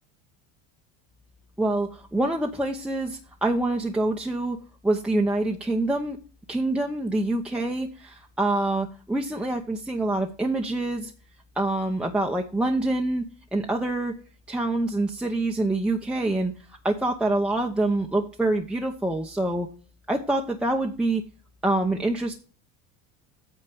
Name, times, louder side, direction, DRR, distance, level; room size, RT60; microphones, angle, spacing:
voice 1, 1.6-4.6 4.8-6.2 6.5-11.1 11.6-13.2 13.5-14.2 14.5-16.5 16.8-19.7 20.1-21.2 21.6-22.4, right 2 dB, 5° right, 0 dB, 0.9 m, -26 dB
9.0 x 4.5 x 6.9 m, 0.37 s
supercardioid pair, 115°, 37 cm